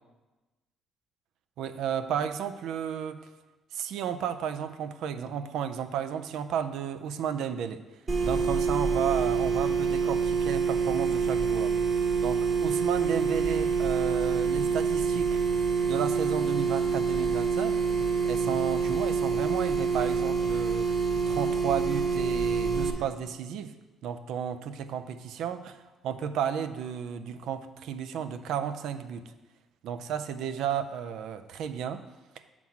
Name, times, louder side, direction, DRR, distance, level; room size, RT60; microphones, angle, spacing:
voice 1, 1.6-3.3 3.7-7.8 8.2-11.8 12.2-15.4 15.9-17.8 18.2-20.9 21.3-23.7 24.0-25.8 26.0-29.3 29.8-32.0, right 8 dB, 80° right, 10 dB, 0.4 m, -33 dB
sound 1, 8.1-22.9, right 5 dB, 35° right, 1.2 m, -26 dB
7.2 x 4.0 x 5.8 m, 1.2 s
cardioid pair, 100°, 0 cm